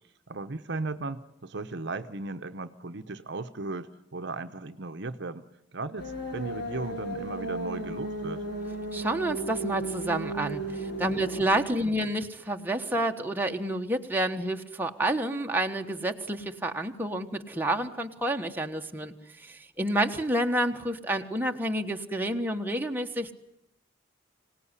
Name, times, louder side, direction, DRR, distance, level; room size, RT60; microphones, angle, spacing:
voice 1, 0.3-5.4 5.7-8.4 10.6-10.7 11.1-11.2 11.8-12.0, right 3 dB, 60° right, 9 dB, 1.0 m, -36 dB
sound 1, 6.0-11.4, right 2 dB, 60° left, 7.3 m, -34 dB
voice 2, 8.9-23.4, right 1 dB, 10° right, 3 dB, 1.3 m, -29 dB
25.5 x 18.5 x 9.9 m, 0.80 s
head